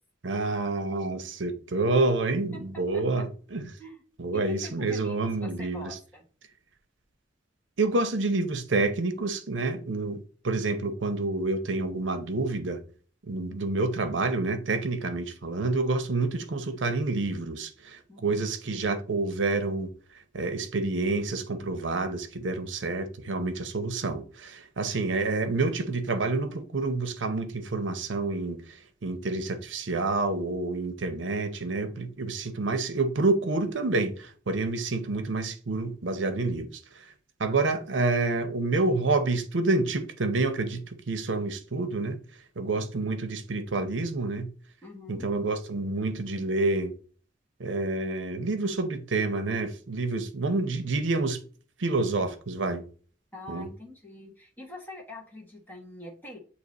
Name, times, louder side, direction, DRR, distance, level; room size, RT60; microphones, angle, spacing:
voice 1, 0.2-3.7 4.2-6.0 7.8-12.8 13.3-19.9 20.3-37.0 37.4-42.2 42.6-44.5 45.1-46.9 47.6-51.4 51.8-52.8 53.5-53.7, right 3 dB, 75° right, 0.7 m, -28 dB
voice 2, 2.5-3.2 3.8-4.0 4.3-6.2 18.1-18.4 44.8-45.3 53.3-56.4, left 1 dB, 10° left, 1.4 m, -44 dB
8.1 x 2.9 x 4.0 m
head